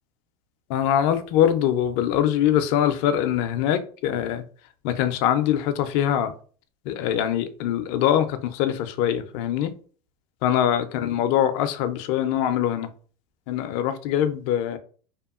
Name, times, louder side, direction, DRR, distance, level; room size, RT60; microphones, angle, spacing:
voice 1, 0.7-4.4 4.8-6.3 6.9-9.7 10.4-12.9 13.5-14.8, left 10 dB, 60° left, 9 dB, 0.4 m, -23 dB
2.8 x 2.2 x 2.3 m, 0.41 s
hypercardioid pair, 105°, 21 cm